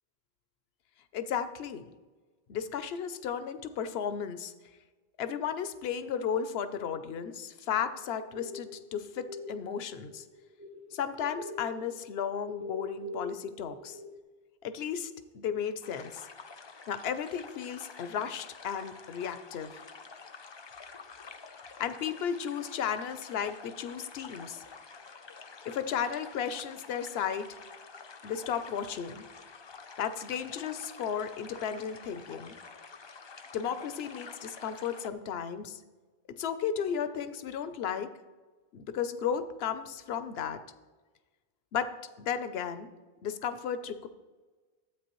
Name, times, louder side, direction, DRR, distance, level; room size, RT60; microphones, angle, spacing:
voice 1, 1.1-1.9 2.5-4.5 5.2-10.2 10.9-14.0 14.6-16.3 16.9-19.8 21.8-24.6 25.7-27.6 28.2-29.2 30.0-32.5 33.5-35.8 36.3-38.1 38.7-40.6 41.7-42.9 43.2-44.1, left 8 dB, 75° left, 12 dB, 0.9 m, -34 dB
sound 1, 7.8-11.0 11.2-14.2, left 2 dB, 20° right, 0.5 m, -43 dB
sound 2, 15.8-35.1, left 4 dB, 40° left, 0.4 m, -49 dB
12.5 x 8.4 x 3.0 m, 1.3 s
omnidirectional pair, 1.1 m